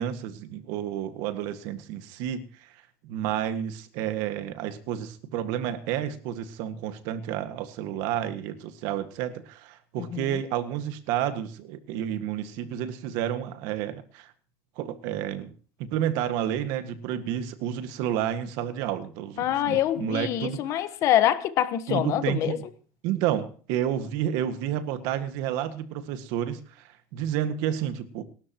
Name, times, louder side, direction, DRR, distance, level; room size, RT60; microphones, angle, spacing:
voice 1, 0.0-2.7 3.0-14.3 14.8-15.5 15.8-20.8 21.9-22.6 23.0-28.2, right 10 dB, 80° right, 1.8 m, -30 dB
voice 2, 19.4-22.6, left 12 dB, 50° left, 1.3 m, -25 dB
28.5 x 12.5 x 3.0 m
cardioid pair, 150°, 7 cm